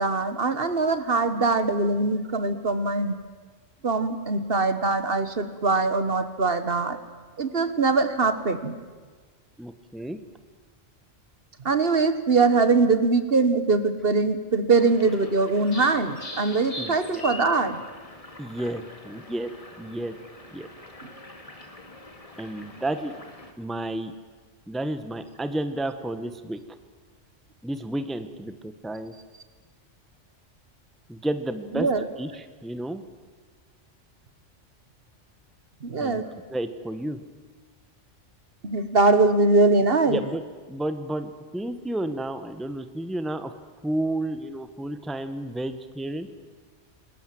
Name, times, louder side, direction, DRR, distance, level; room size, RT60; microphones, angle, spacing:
voice 1, 0.0-3.2 3.8-7.0 7.4-8.8 11.6-17.8 31.7-32.0 35.8-36.3 38.6-40.2, right 3 dB, 55° right, 11 dB, 1.4 m, -22 dB
voice 2, 9.6-10.2 16.8-17.2 18.4-19.5 19.8-20.1 20.5-20.7 22.4-23.1 23.6-24.1 24.7-26.6 27.6-29.1 31.1-31.9 32.2-33.0 36.0-36.2 36.5-37.2 40.1-40.4 40.7-43.5 43.8-46.3, right 1 dB, ahead, 10 dB, 1.0 m, -31 dB
sound 1, 14.8-23.5, left 2 dB, 30° left, 2.1 m, -43 dB
28.0 x 21.0 x 7.7 m, 1.4 s
omnidirectional pair, 1.2 m